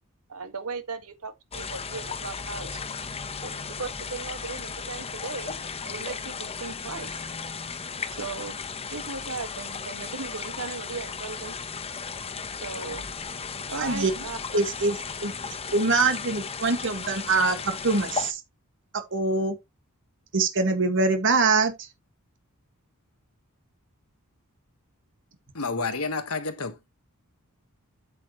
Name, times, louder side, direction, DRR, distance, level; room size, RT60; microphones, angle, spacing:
voice 1, 0.3-2.8 3.4-5.6 5.8-7.2 8.1-8.6 8.9-11.5 12.6-13.1 13.7-14.4, right 4 dB, 75° right, 1.8 m, -37 dB
sound 1, 1.5-18.3, left 5 dB, 25° left, 0.9 m, -35 dB
voice 2, 13.8-14.1 14.5-15.3 15.7-18.4 18.9-19.5 20.3-21.9, right 3 dB, 55° right, 1.8 m, -24 dB
voice 3, 25.5-26.9, left 4 dB, 70° left, 1.5 m, -30 dB
8.5 x 7.8 x 3.1 m
head